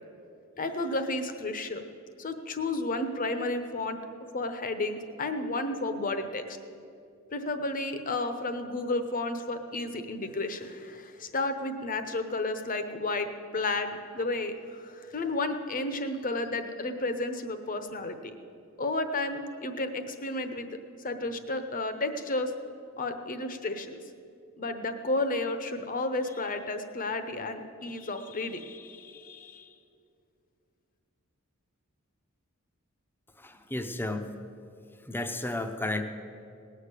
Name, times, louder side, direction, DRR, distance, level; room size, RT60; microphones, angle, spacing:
voice 1, 0.6-1.8 2.2-4.0 4.3-6.6 7.3-18.3 18.8-20.8 21.0-22.5 23.0-24.0 24.6-29.7, left 2 dB, 40° left, 8 dB, 0.9 m, -32 dB
voice 2, 33.4-34.3 35.0-36.0, left 2 dB, 10° left, 7 dB, 0.7 m, -33 dB
18.5 x 6.5 x 8.3 m, 2.5 s
head